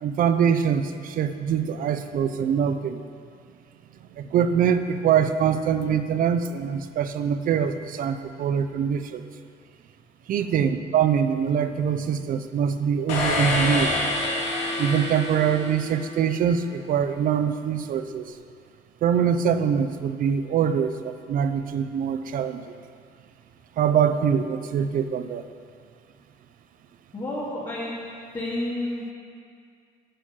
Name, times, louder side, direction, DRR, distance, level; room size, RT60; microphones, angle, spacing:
voice 1, 0.0-3.0 4.2-9.2 10.3-13.9 14.8-18.3 19.0-22.6 23.8-25.4, right 8 dB, 55° right, 10 dB, 0.6 m, -24 dB
sound 1, 13.1-16.2, left 2 dB, 90° left, 2.6 m, -27 dB
voice 2, 27.1-27.9 28.3-29.1, left 1 dB, 25° left, -9 dB, 2.2 m, -30 dB
10.0 x 4.5 x 7.3 m, 2.3 s
cardioid pair, 110°, 17 cm